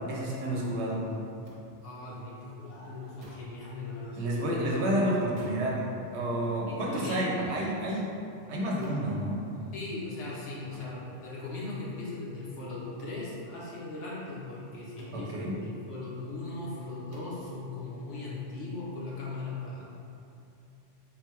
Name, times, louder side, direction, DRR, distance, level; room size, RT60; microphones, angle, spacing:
voice 1, 0.1-1.0 4.2-5.8 6.1-8.1 8.5-9.4 15.1-15.5, right 1 dB, 65° right, -3 dB, 0.9 m, -30 dB
sound 1, 1.4-1.6 3.2-3.5 5.4-5.7 6.9-7.2 8.8-9.1 10.7-11.0 13.0-13.2 15.0-15.2 17.1-17.4, right 1 dB, 35° right, 0.6 m, -49 dB
voice 2, 1.8-4.7 5.0-5.1 6.7-7.5 9.7-19.8, left 2 dB, 70° left, -7 dB, 1.2 m, -39 dB
4.0 x 2.3 x 4.4 m, 2.7 s
omnidirectional pair, 1.3 m